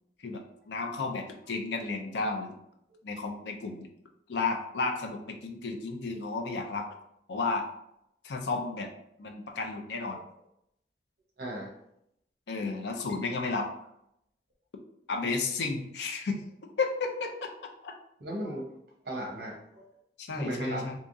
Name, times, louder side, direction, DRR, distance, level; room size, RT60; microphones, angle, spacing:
voice 1, 0.2-2.6 3.0-3.9 4.3-6.9 7.3-7.6 8.2-8.9 9.2-10.2 12.5-13.7 15.1-16.4 16.8-17.5 17.8-17.9 20.2-20.9, left 3 dB, 80° left, 3 dB, 0.5 m, -32 dB
voice 2, 11.4-11.7 18.2-18.6 19.0-19.8 20.3-20.8, right 1 dB, 65° right, -2 dB, 1.0 m, -36 dB
3.5 x 2.9 x 2.6 m, 0.78 s
head